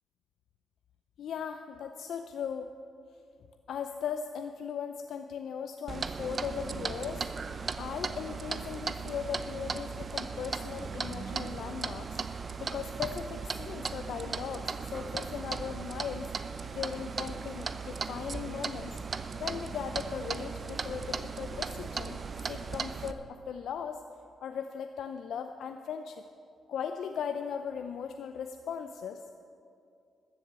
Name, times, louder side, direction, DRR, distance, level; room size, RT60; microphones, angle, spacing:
voice 1, 1.2-2.7 3.7-7.3 7.8-19.0 19.4-22.2 22.5-24.0 24.4-26.2 26.7-29.4, left 7 dB, 75° left, 7 dB, 0.5 m, -38 dB
Clock, 5.9-23.1, right 5 dB, 45° right, 0.7 m, -37 dB
14.0 x 7.8 x 7.4 m, 2.5 s
supercardioid pair, 55°, 0 cm